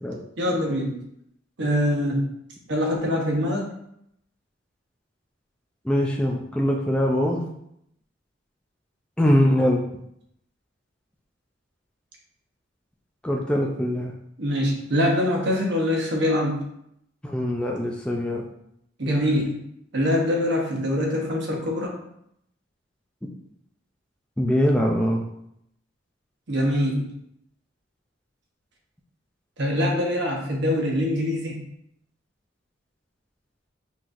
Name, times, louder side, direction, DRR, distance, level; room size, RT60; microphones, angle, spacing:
voice 1, 0.4-1.0 1.6-2.3 2.7-3.7 14.4-16.7 19.0-19.7 19.9-21.9 26.5-27.0 29.6-31.7, left 1 dB, 65° right, -1 dB, 1.0 m, -24 dB
voice 2, 5.8-7.4 9.2-9.8 13.2-14.1 17.2-18.4 24.4-25.2, equal, 5° left, -1 dB, 0.4 m, -22 dB
5.6 x 3.1 x 2.6 m, 0.75 s
head